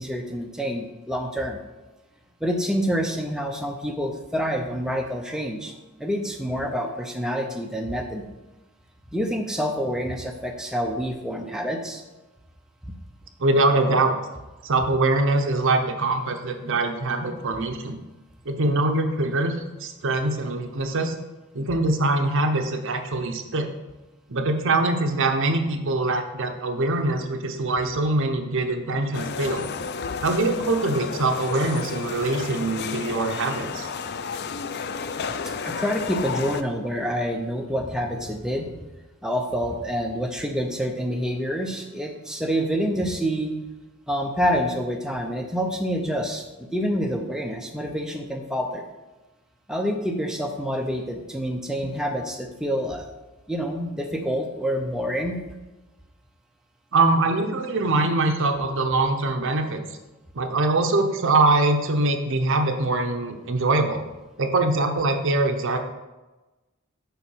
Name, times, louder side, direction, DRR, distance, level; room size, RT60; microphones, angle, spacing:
voice 1, 0.0-1.6 2.4-5.7 6.0-8.2 9.1-12.0 12.8-12.9 35.3-35.4 35.6-38.7 39.2-43.5 44.1-46.4 46.7-48.9 49.7-53.1 53.5-55.4, equal, 5° right, 2 dB, 0.6 m, -27 dB
voice 2, 13.4-14.1 14.6-18.0 18.5-21.1 21.5-23.7 24.3-29.7 30.2-33.9 56.9-59.8 60.3-64.0 64.4-65.8, right 2 dB, 60° right, 6 dB, 0.8 m, -23 dB
sound 1, 29.1-36.6, left 6 dB, 50° left, 0.4 m, -32 dB
6.9 x 4.6 x 6.1 m, 1.1 s
head